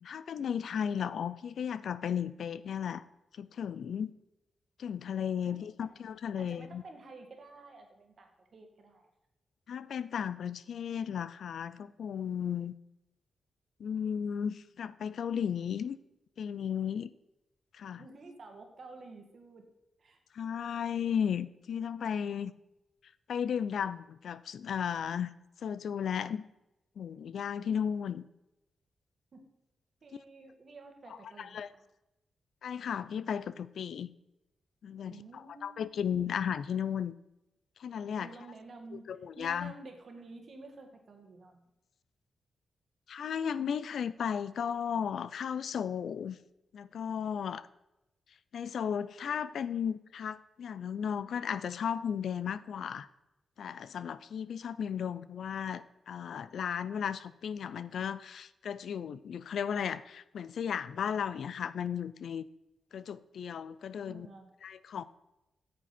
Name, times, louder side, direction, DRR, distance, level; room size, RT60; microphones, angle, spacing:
voice 1, 0.0-3.0 3.4-4.1 4.8-6.8 9.7-12.7 13.8-16.0 16.4-17.1 17.7-18.0 20.3-22.5 23.3-25.3 25.6-26.4 27.0-28.3 31.4-31.7 32.6-34.1 34.8-37.1 37.8-38.3 38.9-39.7 43.1-46.4 46.7-47.7 48.5-53.1 53.6-62.5 62.9-64.3 64.6-65.0, left 8 dB, 75° left, 16 dB, 0.4 m, -35 dB
voice 2, 5.4-5.9 6.4-9.1 18.0-19.7 20.0-20.2 29.3-29.5 30.0-31.8 35.1-36.3 38.2-39.1 39.4-41.7 64.0-64.5, right 3 dB, 55° right, 4 dB, 1.7 m, -51 dB
9.1 x 7.3 x 4.3 m, 0.91 s
wide cardioid pair, 115°, 0 cm